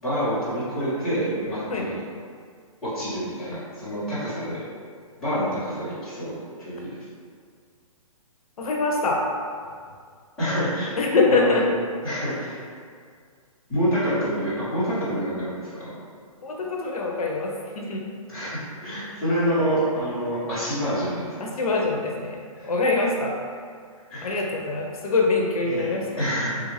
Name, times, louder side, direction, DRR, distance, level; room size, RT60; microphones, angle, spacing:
voice 1, 0.0-2.0 2.8-4.6 5.2-6.3 6.6-7.0 10.4-11.0 11.3-11.6 12.0-12.6 13.7-15.9 18.3-21.3 22.6-22.7 24.1-24.4 25.7-26.5, equal, ahead, -19 dB, 1.1 m, -27 dB
voice 2, 8.6-9.2 11.0-11.6 16.4-18.0 21.4-22.4 22.6-23.4 24.2-26.1, left 3 dB, 80° left, 0 dB, 0.6 m, -24 dB
3.4 x 2.4 x 3.1 m, 2.1 s
hypercardioid pair, 175°, 18 cm